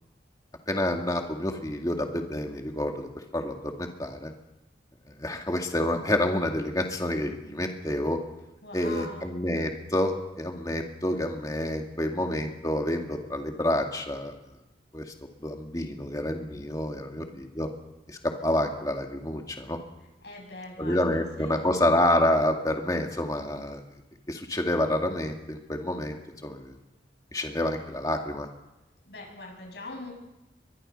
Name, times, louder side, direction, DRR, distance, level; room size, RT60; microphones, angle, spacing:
voice 1, 0.7-4.3 5.1-8.2 8.7-14.3 14.9-15.1 15.4-17.7 18.1-19.8 20.8-23.8 24.3-26.2 26.4-26.8 27.3-28.5, left 1 dB, 20° left, 3 dB, 2.3 m, -28 dB
voice 2, 8.6-9.3 17.2-17.4 20.2-21.8 29.0-30.1, left 2 dB, 70° left, 1 dB, 7.9 m, -42 dB
23.5 x 22.0 x 5.6 m, 0.97 s
head